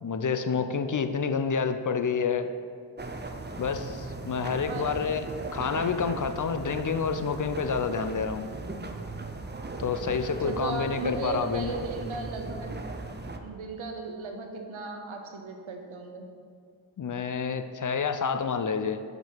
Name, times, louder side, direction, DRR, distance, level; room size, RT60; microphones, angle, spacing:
voice 1, 0.0-2.5 3.6-5.3 5.5-8.4 9.8-11.8 17.0-19.0, left 5 dB, 40° left, 9 dB, 0.6 m, -28 dB
sound 1, 3.0-13.4, right 2 dB, 25° right, 0.7 m, -38 dB
voice 2, 4.7-5.0 5.6-5.7 10.4-12.7 13.4-16.3, right 3 dB, 90° right, 3 dB, 0.9 m, -36 dB
6.1 x 5.2 x 5.8 m, 2.2 s
cardioid pair, 45°, 46 cm